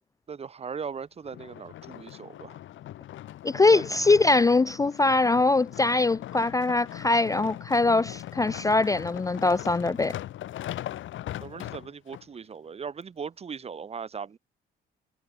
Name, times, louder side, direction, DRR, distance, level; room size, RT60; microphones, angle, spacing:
voice 1, 0.3-2.6 3.7-3.8 11.4-14.4, right 6 dB, 30° right, 0.6 m, -38 dB
sound 1, 1.2-12.2 12.9-13.0, left 13 dB, 80° left, 1.8 m, -40 dB
voice 2, 3.4-10.1, left 3 dB, 15° left, 0.4 m, -22 dB
cardioid pair, 90°, 20 cm